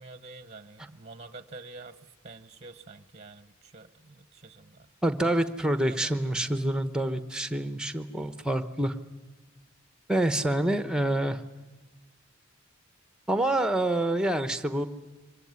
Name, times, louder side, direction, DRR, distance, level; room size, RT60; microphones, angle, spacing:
voice 1, 0.0-4.9 5.7-6.7, right 3 dB, 30° right, 12 dB, 0.9 m, -47 dB
voice 2, 5.0-8.9 10.1-11.4 13.3-14.9, right 1 dB, 5° right, 10 dB, 1.0 m, -27 dB
25.0 x 20.0 x 9.5 m, 1.2 s
head